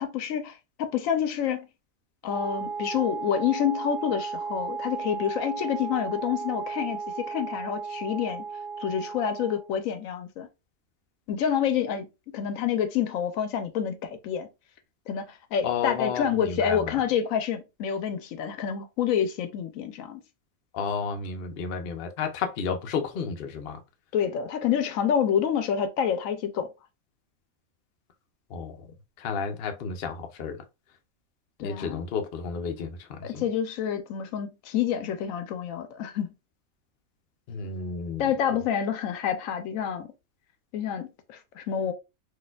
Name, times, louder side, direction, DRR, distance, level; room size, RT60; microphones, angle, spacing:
voice 1, 0.0-1.7 2.2-8.4 8.8-10.5 11.3-12.1 12.3-14.5 15.1-20.2 24.1-26.7 31.6-32.0 33.2-36.3 38.2-40.1 40.7-41.9, left 8 dB, 80° left, 1.0 m, -28 dB
Wind instrument woodwind instrument, 2.3-9.7, right 5 dB, 45° right, 0.9 m, -35 dB
voice 2, 15.6-17.0 20.7-23.8 28.5-28.9 29.2-30.6 31.6-33.4 37.5-38.3, left 6 dB, 55° left, 0.7 m, -32 dB
4.0 x 2.6 x 2.2 m
omnidirectional pair, 1.4 m